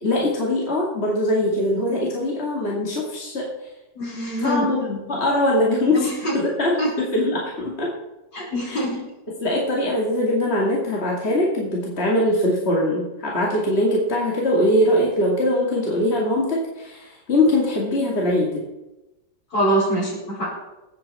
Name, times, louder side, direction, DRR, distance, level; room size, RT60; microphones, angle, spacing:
voice 1, 0.0-3.5 4.4-6.1 6.3-7.9 8.7-8.8 9.4-18.6, left 1 dB, 35° left, -3 dB, 2.6 m, -22 dB
voice 2, 4.0-4.7 5.9-6.3 6.8-6.9 8.3-9.0 19.5-20.5, right 1 dB, 65° left, -5 dB, 6.0 m, -24 dB
20.5 x 9.0 x 4.3 m, 1.0 s
omnidirectional pair, 2.0 m